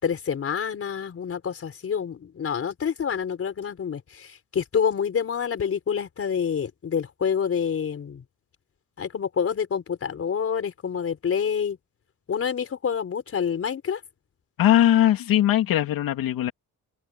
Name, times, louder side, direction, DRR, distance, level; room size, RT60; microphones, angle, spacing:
voice 1, 0.0-8.2 9.0-11.8 12.3-14.0, left 7 dB, 40° left, 4.8 m, -27 dB
voice 2, 14.6-16.5, left 12 dB, 80° left, 2.7 m, -20 dB
cardioid pair, 145°, 34 cm